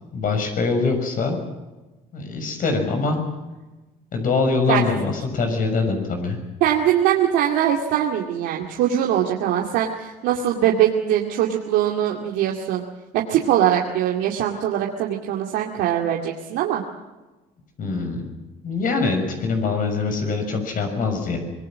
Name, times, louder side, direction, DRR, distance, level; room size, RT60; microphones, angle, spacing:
voice 1, 0.1-1.4 2.1-3.2 4.1-6.4 17.8-18.2 18.6-21.4, left 4 dB, 55° left, 5 dB, 6.5 m, -23 dB
voice 2, 6.6-12.8 13.1-16.8, right 10 dB, 90° right, 0 dB, 2.4 m, -22 dB
25.5 x 20.0 x 7.5 m, 1.1 s
cardioid pair, 110°, 17 cm